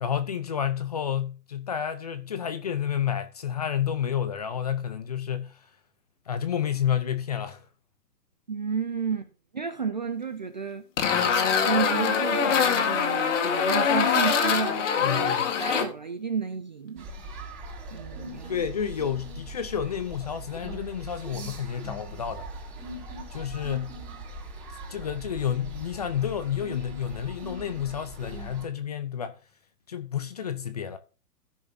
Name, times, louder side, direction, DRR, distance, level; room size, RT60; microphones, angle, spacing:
voice 1, 0.0-5.6 6.3-7.6 15.0-15.5 18.5-22.5 23.3-24.0 24.9-29.4 29.9-31.0, left 9 dB, 25° left, 0.6 m, -30 dB
voice 2, 8.5-10.8 11.6-17.1 17.9-18.7, right 6 dB, 30° right, 0.5 m, -32 dB
sound 1, 11.0-15.8, left 6 dB, 45° left, 2.0 m, -23 dB
sound 2, 17.0-28.6, right 1 dB, 15° right, 3.5 m, -40 dB
16.5 x 6.3 x 2.7 m
hypercardioid pair, 150°, 49 cm